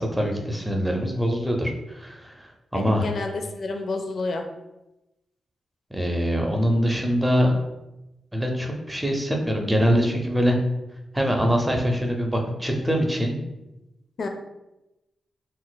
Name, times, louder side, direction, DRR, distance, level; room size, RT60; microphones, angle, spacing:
voice 1, 0.0-3.1 5.9-7.5 8.3-10.6 11.1-13.4, equal, 10° right, 2 dB, 0.5 m, -23 dB
voice 2, 2.7-4.5 14.2-14.3, left 3 dB, 60° left, 4 dB, 0.4 m, -29 dB
3.9 x 2.4 x 2.2 m, 0.95 s
wide cardioid pair, 115°, 0 cm